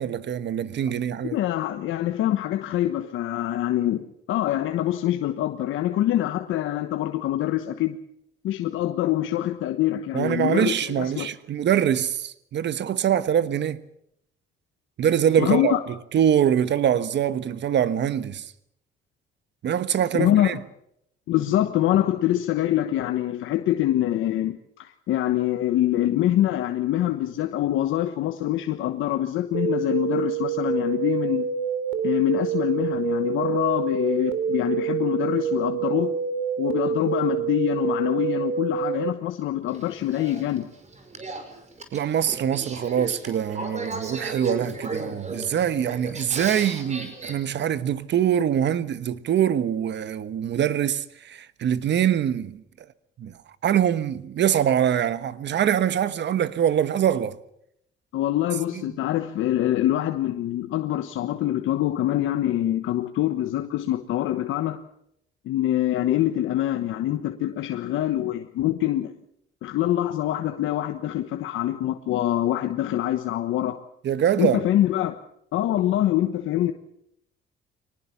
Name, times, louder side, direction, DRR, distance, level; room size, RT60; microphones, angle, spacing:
voice 1, 0.0-1.4 10.1-13.8 15.0-15.7 16.1-18.5 19.6-20.6 41.9-52.6 53.2-57.3 58.7-58.8 74.0-74.6, right 9 dB, 65° right, 1.3 m, -24 dB
voice 2, 1.2-8.0 8.4-11.3 15.4-15.8 20.1-20.6 21.3-31.5 32.0-36.2 36.6-40.7 58.1-64.8 65.4-69.1 69.6-73.8 74.4-75.2 75.5-76.7, left 13 dB, 85° left, 1.2 m, -25 dB
sound 1, 29.5-39.1, right 7 dB, 90° right, 3.2 m, -27 dB
Male speech man speaking / Female speech woman speaking / Conversation, 39.7-47.3, right 2 dB, 35° right, 5.2 m, -36 dB
23.5 x 19.5 x 7.2 m
cardioid pair, 90°, 20 cm